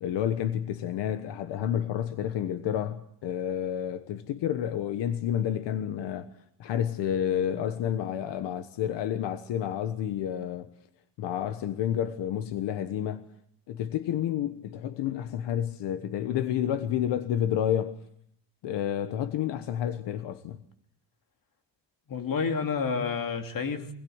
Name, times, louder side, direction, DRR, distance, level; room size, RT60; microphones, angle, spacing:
voice 1, 0.0-6.3 6.6-10.7 11.2-13.2 13.7-18.0 18.6-20.6, left 10 dB, 85° left, 1.3 m, -30 dB
voice 2, 22.1-23.9, left 5 dB, 55° left, 3.0 m, -29 dB
24.5 x 20.0 x 8.0 m
cardioid pair, 105°, 41 cm